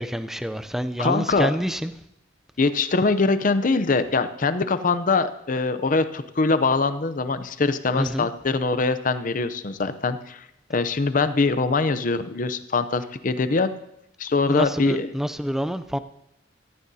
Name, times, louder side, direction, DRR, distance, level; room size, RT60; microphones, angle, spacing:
voice 1, 0.0-1.9 8.0-8.3 14.5-16.0, equal, ahead, 12 dB, 0.4 m, -27 dB
voice 2, 1.0-1.5 2.6-13.7 14.2-15.1, left 3 dB, 45° left, 12 dB, 0.6 m, -23 dB
15.5 x 14.5 x 2.8 m, 0.80 s
head